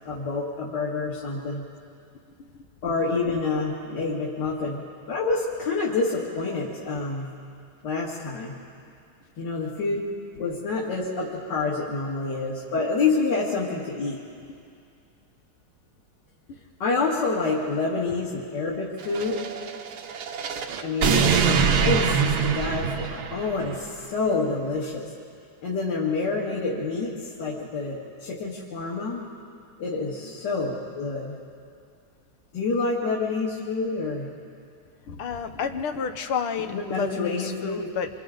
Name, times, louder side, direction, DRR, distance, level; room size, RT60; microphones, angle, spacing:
voice 1, 0.1-1.7 2.8-4.8 5.1-7.3 7.8-8.5 9.4-10.0 10.4-14.2 16.8-19.4 20.8-25.1 25.6-29.2 29.8-31.4 32.5-34.3 36.7-37.8, left 3 dB, 55° left, -6 dB, 2.7 m, -27 dB
sound 1, 19.0-23.8, right 6 dB, 60° right, 1.2 m, -24 dB
voice 2, 35.1-38.1, left 6 dB, 90° left, 7 dB, 1.9 m, -31 dB
26.5 x 26.0 x 3.9 m, 2.4 s
omnidirectional pair, 2.3 m